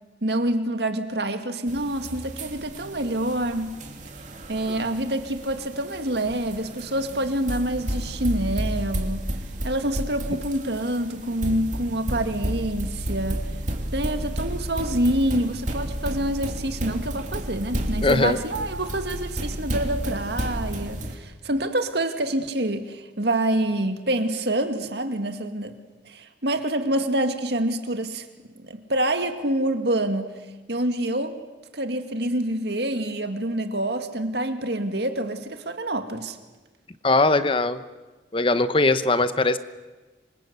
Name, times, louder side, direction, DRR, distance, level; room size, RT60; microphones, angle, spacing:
voice 1, 0.2-3.7 4.5-9.3 9.6-13.4 13.9-25.8 26.1-28.3 28.6-30.3 30.7-31.4 31.7-36.4, right 1 dB, 60° right, 7 dB, 2.2 m, -26 dB
sound 1, 1.7-21.2, right 1 dB, 40° right, 2.9 m, -32 dB
voice 2, 18.0-18.4 37.0-37.8 38.3-39.6, left 2 dB, 30° left, 12 dB, 0.9 m, -20 dB
27.0 x 25.0 x 8.2 m, 1.3 s
head